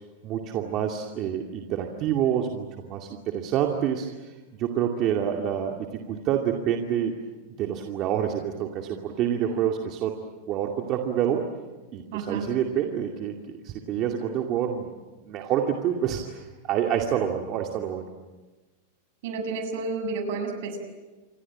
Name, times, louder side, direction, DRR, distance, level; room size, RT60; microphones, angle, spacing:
voice 1, 0.2-4.1 4.6-7.1 7.5-10.1 10.5-11.5 11.9-13.3 13.6-14.9 15.2-18.1, right 9 dB, 40° right, 2 dB, 2.4 m, -27 dB
voice 2, 12.1-12.4 19.2-20.8, right 4 dB, 65° right, 6 dB, 7.2 m, -31 dB
28.5 x 23.5 x 8.8 m, 1.2 s
supercardioid pair, 140°, 0 cm